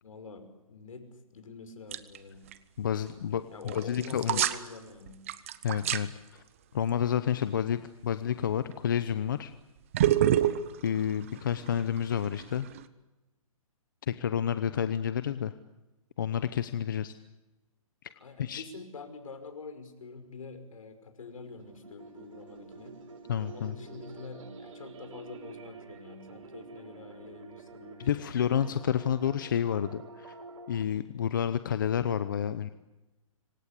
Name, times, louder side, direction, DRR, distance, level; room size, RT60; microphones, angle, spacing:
voice 1, 0.0-2.5 3.5-5.3 18.1-23.0 23.5-28.3, left 4 dB, 70° left, 9 dB, 5.7 m, -46 dB
sound 1, 1.9-2.2 2.5-2.6 3.7-4.7 5.1-6.0 8.7-8.9 9.9-12.8, right 11 dB, 25° right, 0.9 m, -27 dB
voice 2, 2.8-4.4 5.6-6.4 6.7-9.5 10.8-12.7 14.1-15.5 16.2-17.2 18.4-18.6 23.3-23.8 28.0-30.4 30.7-32.7, left 9 dB, 35° left, 12 dB, 0.9 m, -30 dB
guitar ambient, 21.2-30.8, right 4 dB, 65° right, 4.1 m, -48 dB
26.5 x 24.5 x 8.4 m, 1.0 s
hypercardioid pair, 175°, 18 cm